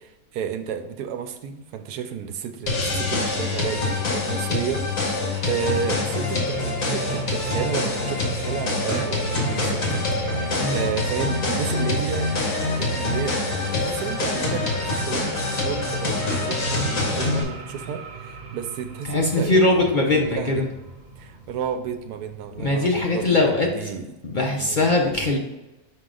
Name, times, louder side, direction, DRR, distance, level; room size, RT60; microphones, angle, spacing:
voice 1, 0.0-4.8 5.4-19.8 20.1-20.6 21.2-25.0, right 7 dB, 90° right, 8 dB, 1.2 m, -32 dB
sound 1, 2.7-17.4, left 2 dB, 60° left, 1.8 m, -25 dB
sound 2, 5.2-23.1, right 4 dB, 45° right, 0.7 m, -38 dB
voice 2, 19.1-20.7 22.6-23.9 24.2-25.4, left 2 dB, 45° left, 0 dB, 0.7 m, -21 dB
6.1 x 4.8 x 3.8 m, 1.1 s
omnidirectional pair, 1.6 m